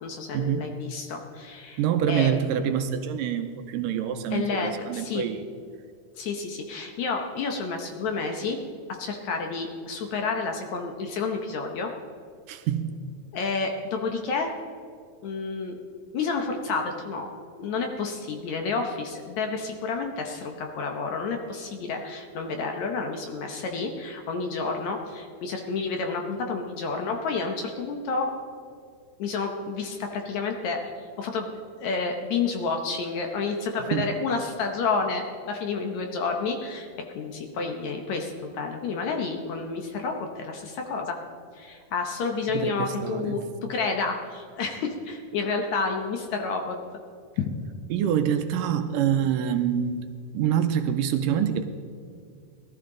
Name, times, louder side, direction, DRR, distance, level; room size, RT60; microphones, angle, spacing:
voice 1, 0.0-1.8 2.1-2.3 4.3-5.2 6.2-8.6 9.0-11.9 13.3-14.5 15.2-15.8 16.1-17.3 17.6-28.3 29.2-30.8 31.2-31.5 31.8-41.2 41.5-43.4 43.7-46.8 47.4-47.5, left 4 dB, 70° left, 3 dB, 1.9 m, -30 dB
voice 2, 1.8-5.4 12.5-13.1 33.9-34.1 42.5-43.5 47.9-50.1 50.3-51.7, right 9 dB, 80° right, 8 dB, 2.2 m, -26 dB
18.0 x 13.0 x 3.8 m, 2.3 s
omnidirectional pair, 4.0 m